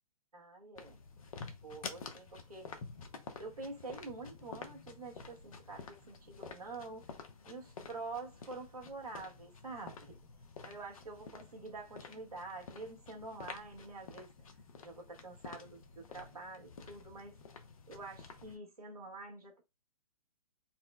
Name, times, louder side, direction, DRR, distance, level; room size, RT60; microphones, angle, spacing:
voice 1, 0.3-1.0 1.6-2.7 3.4-7.1 7.5-10.2 10.6-14.3 14.8-17.4 17.9-19.6, right 3 dB, 85° right, 1.4 m, -47 dB
sound 1, 0.8-18.6, left 4 dB, 65° left, 0.8 m, -50 dB
4.1 x 2.1 x 2.2 m
figure-of-eight pair, 125°, 19 cm